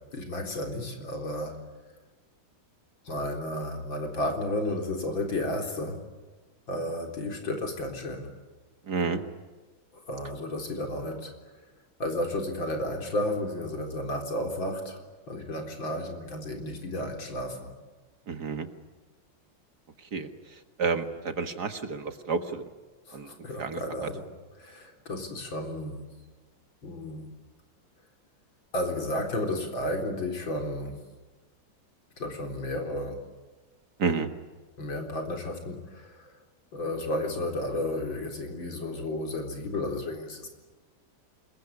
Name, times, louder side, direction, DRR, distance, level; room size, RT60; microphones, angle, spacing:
voice 1, 0.1-1.6 3.0-6.0 6.7-8.3 10.1-11.3 12.0-15.0 15.3-17.7 23.1-24.3 24.6-26.0 26.8-27.3 28.7-31.0 32.2-33.2 34.8-36.3 36.7-40.5, left 1 dB, 75° left, 3 dB, 4.7 m, -32 dB
voice 2, 8.9-9.2 18.3-18.7 20.1-22.7 23.1-23.3 23.6-23.8 34.0-34.3, right 5 dB, 55° right, 7 dB, 2.2 m, -30 dB
26.5 x 22.0 x 9.8 m, 1.3 s
omnidirectional pair, 2.2 m